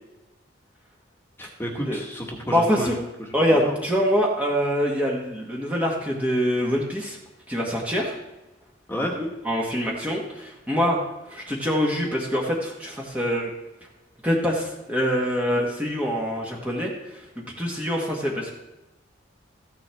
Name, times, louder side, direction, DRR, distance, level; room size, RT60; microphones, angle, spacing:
voice 1, 1.4-3.3 3.6-3.8 8.9-9.1, equal, 10° left, -1 dB, 1.5 m, -31 dB
voice 2, 2.5-3.0 3.3-7.2 7.5-8.1 9.4-11.0 11.3-13.5 14.2-16.9 17.4-18.5, equal, 5° right, -3 dB, 1.4 m, -24 dB
14.5 x 9.6 x 3.5 m, 1.0 s
head